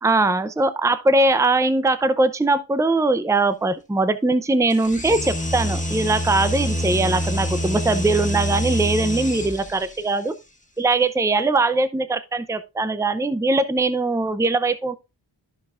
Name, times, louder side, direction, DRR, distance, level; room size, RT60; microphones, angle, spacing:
voice 1, 0.0-10.3 10.8-15.0, right 2 dB, 5° right, 0.6 m, -21 dB
sound 1, 4.7-10.0, equal, 15° left, 1.5 m, -26 dB
13.5 x 5.2 x 2.5 m
wide cardioid pair, 50°, 46 cm